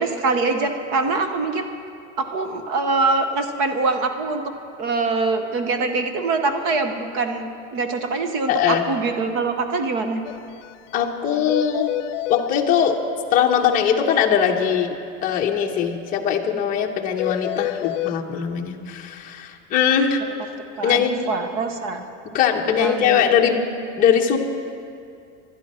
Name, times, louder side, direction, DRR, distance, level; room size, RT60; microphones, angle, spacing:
voice 1, 0.0-1.7 2.2-4.4 4.8-10.2 20.7-22.1 22.7-23.2, right 3 dB, 35° right, 7 dB, 0.8 m, -24 dB
voice 2, 8.5-8.8 10.9-11.9 12.3-13.0 13.3-14.9 15.2-20.2 20.8-21.1 22.3-23.7 24.0-24.4, left 8 dB, 20° left, 1 dB, 0.9 m, -20 dB
sound 1, 10.2-10.4 10.6-10.7 11.0-11.1 11.5-12.5 17.2-18.2, left 16 dB, 75° left, 0.5 m, -27 dB
20.5 x 12.0 x 4.3 m, 2.4 s
supercardioid pair, 165°, 37 cm